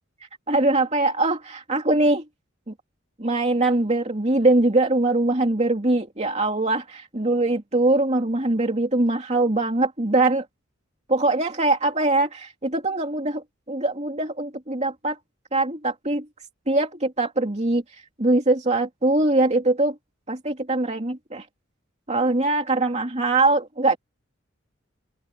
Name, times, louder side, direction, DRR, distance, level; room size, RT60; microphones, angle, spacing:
voice 1, 0.5-2.2 2.7-2.8 3.2-10.5 11.1-15.2 15.5-16.3 16.7-17.8 18.2-20.0 20.3-21.5 22.1-24.0, right 2 dB, 35° right, 2.7 m, -22 dB
head